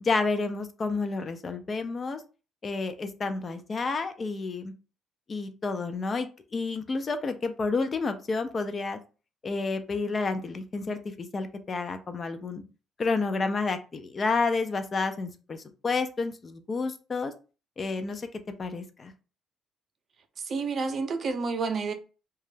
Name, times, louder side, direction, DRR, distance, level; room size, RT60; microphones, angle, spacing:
voice 1, 0.0-2.2 2.6-4.7 5.3-9.0 9.4-12.6 13.0-17.3 17.8-18.3 18.6-19.1, left 4 dB, 35° left, 0.4 m, -30 dB
voice 2, 20.4-21.9, right 4 dB, 50° right, 0.4 m, -29 dB
2.2 x 2.0 x 3.1 m
cardioid pair, 100°, 0 cm